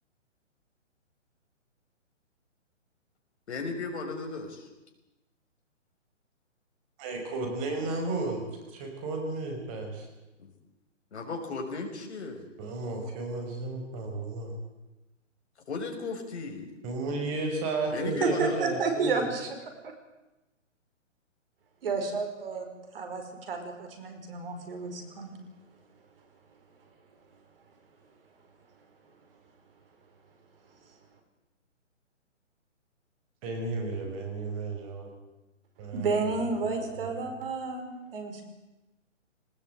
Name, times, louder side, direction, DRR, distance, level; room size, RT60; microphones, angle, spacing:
voice 1, 3.5-4.7 10.4-10.5 11.1-12.5 15.7-16.7 17.1-17.4 17.9-18.6, left 3 dB, 60° left, 3 dB, 6.1 m, -36 dB
voice 2, 7.0-10.1 12.6-14.5 16.8-19.3 33.4-35.1 35.8-37.3, right 3 dB, 25° right, 3 dB, 5.7 m, -33 dB
voice 3, 18.2-19.6 21.8-22.7 22.9-25.3 35.9-38.4, right 4 dB, 45° right, 5 dB, 5.2 m, -31 dB
20.5 x 19.5 x 9.2 m, 1.0 s
hypercardioid pair, 150°, 37 cm